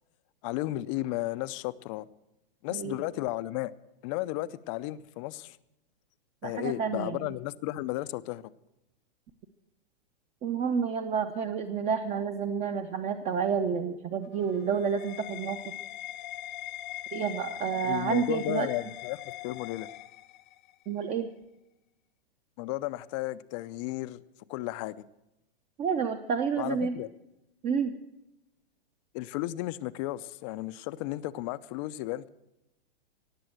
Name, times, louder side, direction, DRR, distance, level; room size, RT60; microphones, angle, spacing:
voice 1, 0.4-2.1 2.6-3.7 4.0-5.6 6.4-8.4 17.8-19.9 22.6-24.2 24.5-25.0 26.6-27.1 29.1-32.3, left 17 dB, 35° left, 0.5 m, -34 dB
voice 2, 6.4-7.2 10.4-15.6 17.1-18.7 20.9-21.3 25.8-27.0 27.6-28.0, right 6 dB, 20° right, 0.7 m, -29 dB
sound 1, 14.2-20.7, left 14 dB, 55° left, 0.9 m, -41 dB
18.0 x 7.7 x 7.7 m
hypercardioid pair, 140°, 29 cm